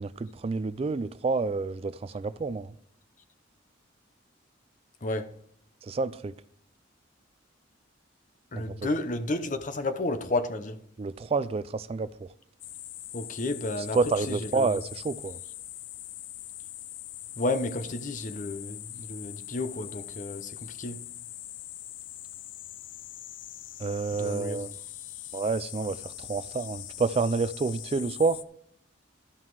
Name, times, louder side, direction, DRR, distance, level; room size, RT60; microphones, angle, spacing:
voice 1, 0.0-2.8 5.8-6.3 8.6-8.9 11.0-12.3 13.9-15.4 23.8-24.7 25.3-28.4, right 4 dB, 30° right, 0.3 m, -29 dB
voice 2, 5.0-5.3 8.5-10.8 13.1-14.0 14.3-14.7 17.4-21.0 24.2-24.6, left 2 dB, 40° left, 0.8 m, -32 dB
sound 1, 12.6-28.4, left 14 dB, 75° left, 0.4 m, -42 dB
12.5 x 5.6 x 4.7 m
head